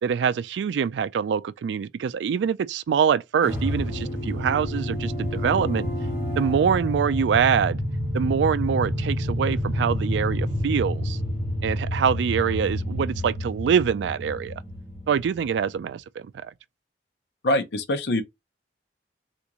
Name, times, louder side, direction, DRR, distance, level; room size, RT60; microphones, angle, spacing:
voice 1, 0.0-5.9 6.4-7.8 8.1-11.2 11.6-14.6 15.1-16.5, right 7 dB, 85° right, 0.3 m, -24 dB
sound 1, 3.4-15.7, equal, 10° right, 1.7 m, -29 dB
voice 2, 17.4-18.2, left 1 dB, 75° left, 0.7 m, -23 dB
3.5 x 2.5 x 2.9 m
head